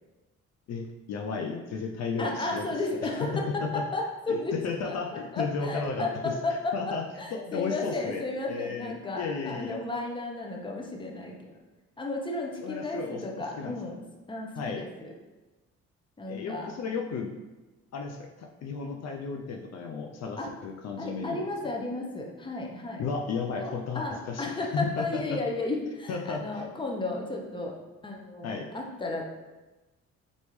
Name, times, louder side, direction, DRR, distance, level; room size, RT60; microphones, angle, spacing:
voice 1, 0.7-2.7 3.0-3.8 4.3-7.0 7.3-8.2 8.5-9.8 12.6-13.2 13.6-13.8 14.6-14.9 16.3-17.3 17.9-21.4 23.0-25.4 26.1-26.7 28.4-28.7, left 5 dB, 60° left, 2 dB, 0.5 m, -34 dB
voice 2, 2.2-4.5 4.8-5.0 5.3-6.7 7.2-11.6 12.0-14.0 14.3-15.1 16.2-16.7 20.4-20.5 21.0-23.0 23.6-27.8 28.0-29.3, left 2 dB, 15° left, 0 dB, 0.7 m, -33 dB
3.9 x 3.6 x 3.1 m, 1.1 s
cardioid pair, 90°, 30 cm